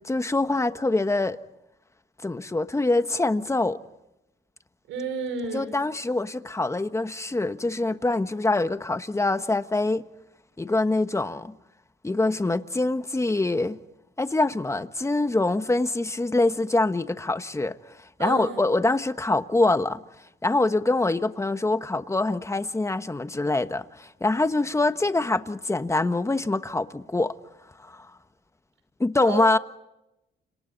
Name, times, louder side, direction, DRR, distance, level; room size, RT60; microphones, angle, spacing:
voice 1, 0.0-1.4 2.2-3.8 5.5-10.0 10.6-11.5 12.0-13.8 14.2-17.8 18.2-20.0 20.4-27.3 27.9-28.1 29.0-29.6, left 2 dB, 15° left, 1.3 m, -24 dB
voice 2, 4.9-5.8 18.2-18.6 29.2-29.5, right 5 dB, 90° right, 5.8 m, -31 dB
30.0 x 27.0 x 4.1 m
cardioid pair, 90°, 20 cm